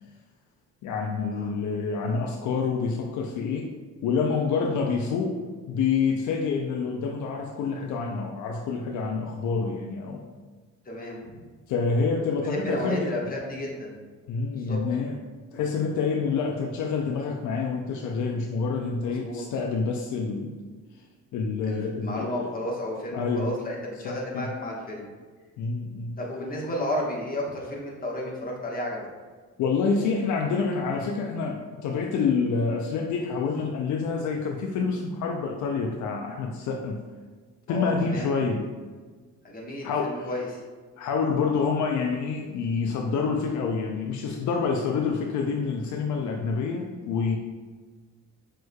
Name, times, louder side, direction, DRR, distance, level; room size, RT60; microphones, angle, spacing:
voice 1, 0.8-3.7 4.0-5.4 5.7-10.3 11.7-13.1 14.3-15.2 15.5-20.6 21.3-22.5 23.1-23.5 24.0-24.5 25.6-26.2 29.6-37.0 37.7-38.7 39.8-40.3 41.0-47.4, left 5 dB, 75° left, 3 dB, 0.5 m, -27 dB
voice 2, 10.8-11.3 12.4-14.0 14.5-14.8 19.0-19.4 21.7-25.1 26.2-29.1 37.7-38.3 39.4-40.6, left 1 dB, 30° left, -2 dB, 1.2 m, -32 dB
6.2 x 3.2 x 2.2 m, 1.4 s
cardioid pair, 90°, 30 cm